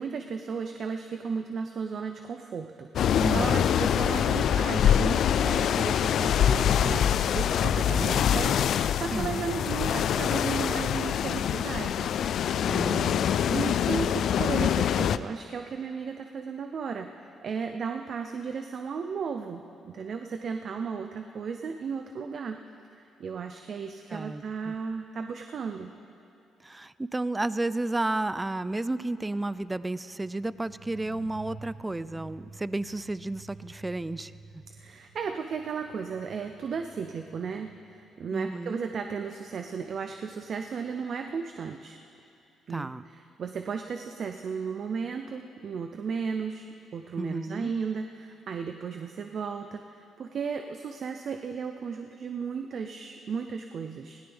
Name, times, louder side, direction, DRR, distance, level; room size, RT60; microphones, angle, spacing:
voice 1, 0.0-12.1 13.5-22.6 22.9-25.9 34.7-42.0 42.7-42.9 43.4-46.7 46.9-54.2, right 5 dB, 55° right, 6 dB, 0.6 m, -35 dB
sound 1, 3.0-15.2, left 9 dB, 70° left, 0.4 m, -25 dB
voice 2, 3.2-3.7 6.8-7.1 9.1-9.4 12.6-13.5 24.1-24.7 26.6-34.6 38.3-38.9 42.7-43.0 47.2-47.7, right 2 dB, 15° right, 16 dB, 0.4 m, -32 dB
sound 2, 30.1-41.1 41.4-41.5, right 3 dB, 80° right, 1.3 m, -51 dB
20.0 x 17.0 x 3.5 m, 2.7 s
cardioid pair, 90°, 0 cm